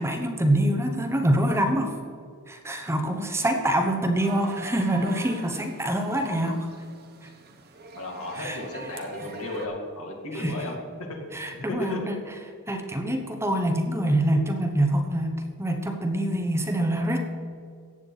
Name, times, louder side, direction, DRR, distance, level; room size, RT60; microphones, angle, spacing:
voice 1, 0.0-1.9 2.5-6.7 8.4-8.6 10.3-10.5 11.3-12.2 12.7-17.2, right 1 dB, 10° right, 4 dB, 0.9 m, -25 dB
sound 1, 4.2-9.7, right 5 dB, 45° right, 1.1 m, -43 dB
voice 2, 8.0-11.2 11.7-12.0, left 2 dB, 70° left, 0 dB, 2.3 m, -34 dB
15.0 x 8.9 x 4.1 m, 2.2 s
head